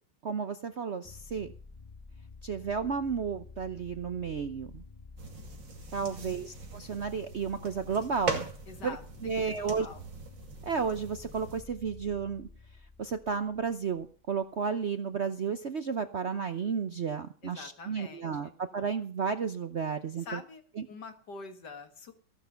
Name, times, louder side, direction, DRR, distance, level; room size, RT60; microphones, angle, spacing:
voice 1, 0.2-1.5 2.4-4.8 5.9-8.5 8.8-9.0 9.2-9.9 10.6-12.5 13.0-20.4 20.8-20.9, right 6 dB, 55° right, 10 dB, 0.8 m, -32 dB
sound 1, 1.0-14.5, left 3 dB, 20° left, 1.0 m, -51 dB
sound 2, 5.2-11.6, right 5 dB, 70° right, 3.1 m, -40 dB
voice 2, 6.0-6.4 8.7-10.0 17.4-18.5 20.2-20.6 20.9-22.1, left 4 dB, 60° left, 8 dB, 2.3 m, -45 dB
15.5 x 11.5 x 5.7 m, 0.40 s
omnidirectional pair, 2.1 m